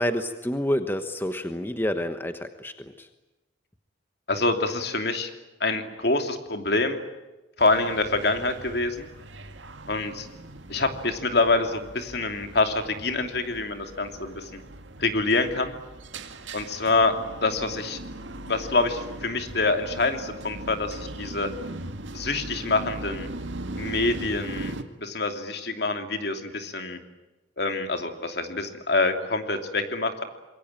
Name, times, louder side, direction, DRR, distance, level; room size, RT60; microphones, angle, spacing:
voice 1, 0.0-3.1, equal, 10° left, 8 dB, 1.2 m, -28 dB
voice 2, 4.3-5.3 5.6-7.0 7.6-9.1 9.9-10.3 10.7-14.6 15.0-15.7 16.5-17.1 17.4-18.0 18.5-21.5 22.1-23.3 23.8-27.0 27.6-30.2, left 3 dB, 60° left, 6 dB, 3.0 m, -26 dB
sound 1, 7.6-24.8, right 1 dB, 85° right, 2.0 m, -39 dB
26.5 x 22.5 x 9.0 m, 1.1 s
head